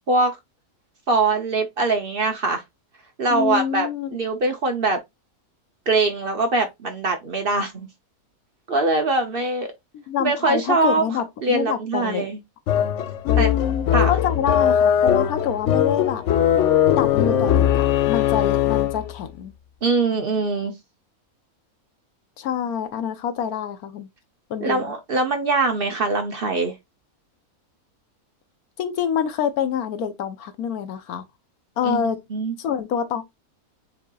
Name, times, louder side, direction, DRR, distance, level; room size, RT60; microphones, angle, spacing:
voice 1, 1.1-2.6 3.2-5.0 5.9-7.9 8.7-9.7 10.2-11.0 11.4-12.4 13.4-13.5 13.9-14.1 19.8-20.7 24.6-26.7 31.8-32.0 32.3-32.5, right 3 dB, 45° right, 0.9 m, -22 dB
voice 2, 3.3-4.2 9.9-12.3 13.2-16.2 16.9-19.5 22.4-24.1 24.5-24.9 28.8-31.3 31.8-32.2 32.6-33.2, left 8 dB, 85° left, 1.3 m, -26 dB
sound 1, 12.7-19.1, left 10 dB, 65° left, 0.8 m, -20 dB
7.3 x 2.9 x 2.3 m
omnidirectional pair, 1.5 m